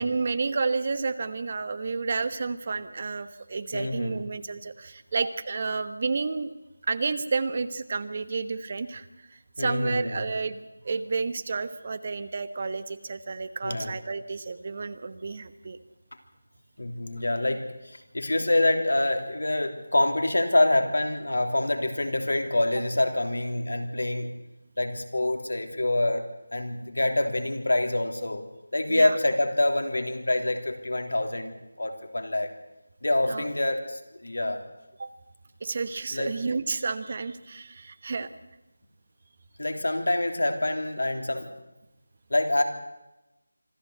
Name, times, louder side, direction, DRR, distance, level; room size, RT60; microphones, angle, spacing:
voice 1, 0.0-6.5 6.9-15.8 28.9-29.2 33.3-33.4 35.0-35.1 35.6-38.3, right 4 dB, 40° right, 13 dB, 1.1 m, -31 dB
voice 2, 3.7-4.2 9.6-10.2 13.6-14.0 16.8-24.3 24.8-28.4 28.7-32.5 33.0-34.7 36.1-36.3 39.6-41.5 42.3-42.6, left 1 dB, 80° left, 5 dB, 3.2 m, -26 dB
25.5 x 14.0 x 8.0 m, 0.97 s
figure-of-eight pair, 170°, 0 cm